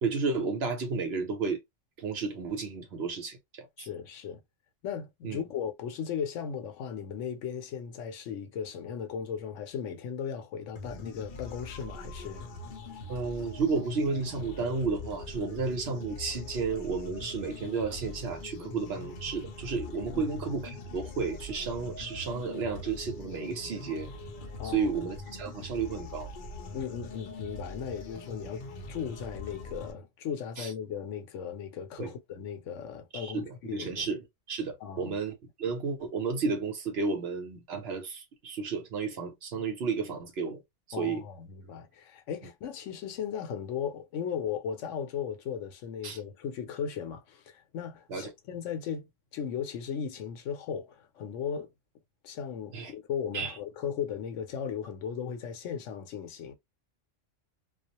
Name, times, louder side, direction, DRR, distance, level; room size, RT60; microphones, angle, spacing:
voice 1, 0.0-1.6 2.0-3.9 5.2-5.4 13.1-24.1 24.6-26.3 30.6-30.7 32.0-32.1 33.1-40.6 41.0-41.2 46.0-46.2 48.1-48.3 52.7-52.9 53.3-53.5, right 4 dB, 60° right, 0.9 m, -32 dB
voice 2, 3.8-4.4 4.8-12.5 20.1-20.3 24.6-24.9 26.7-34.1 34.8-35.2 40.9-49.0 49.3-51.7 52.2-56.5, left 7 dB, 75° left, 0.9 m, -37 dB
sound 1, 10.7-29.9, left 2 dB, 55° left, 0.6 m, -42 dB
2.4 x 2.0 x 2.7 m
omnidirectional pair, 1.3 m